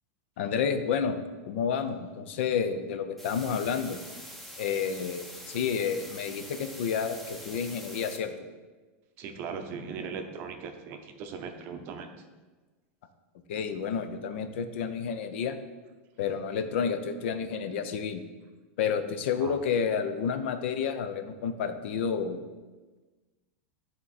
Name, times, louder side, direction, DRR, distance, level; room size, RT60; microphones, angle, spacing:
voice 1, 0.4-4.0 4.6-8.3 13.5-15.6 16.2-18.2 18.8-22.4, left 6 dB, 65° left, 8 dB, 0.6 m, -30 dB
sound 1, 3.2-8.2, equal, ahead, 0.7 m, -45 dB
voice 2, 9.2-12.1 19.4-19.6, right 5 dB, 35° right, 6 dB, 0.6 m, -39 dB
10.0 x 3.7 x 4.1 m, 1.3 s
supercardioid pair, 165°, 7 cm